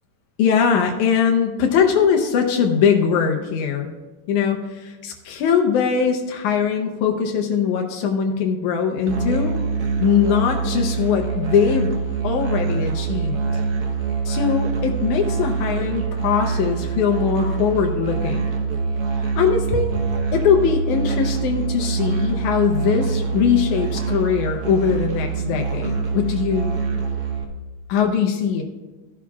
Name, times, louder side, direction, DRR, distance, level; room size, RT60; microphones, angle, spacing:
voice 1, 0.4-3.9 4.3-9.5 10.0-11.9 12.2-13.4 14.3-18.5 19.4-19.9 20.3-26.8 27.9-28.6, left 7 dB, 90° left, 3 dB, 2.2 m, -21 dB
Musical instrument, 9.1-27.4, right 5 dB, 70° right, 0.8 m, -25 dB
14.5 x 11.0 x 2.4 m, 1.2 s
omnidirectional pair, 3.3 m